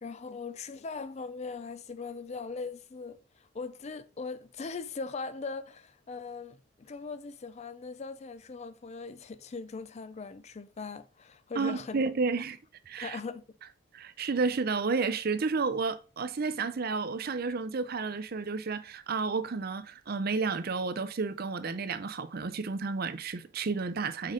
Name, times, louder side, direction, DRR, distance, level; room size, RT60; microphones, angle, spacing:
voice 1, 0.0-12.0 13.0-13.4, left 4 dB, 30° left, 0.4 m, -40 dB
voice 2, 11.6-12.6 12.9-13.2 13.9-24.3, right 4 dB, 45° right, 0.5 m, -31 dB
6.5 x 4.9 x 3.7 m
head